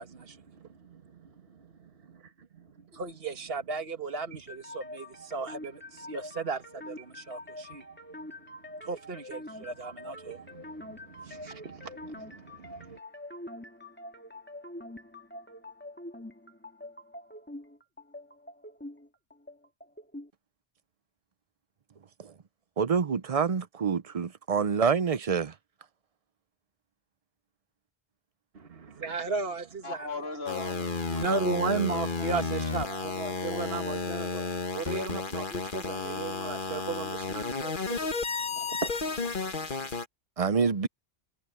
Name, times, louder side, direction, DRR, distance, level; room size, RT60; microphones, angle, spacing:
voice 1, 0.0-1.0 2.1-2.2 2.5-2.6 2.9-7.8 8.8-13.0 28.5-30.1 31.1-38.1 38.5-39.3 39.6-39.8, right 4 dB, 65° right, 1.9 m, -35 dB
FLee Arp, 4.3-20.3, left 1 dB, 10° left, 2.1 m, -45 dB
voice 2, 22.8-25.5 40.4-40.9, right 6 dB, 40° right, 0.6 m, -27 dB
voice 3, 29.8-32.4 32.9-33.7, left 3 dB, 70° left, 3.6 m, -41 dB
sound 1, 30.5-40.1, left 4 dB, 50° left, 1.6 m, -33 dB
omnidirectional pair, 1.1 m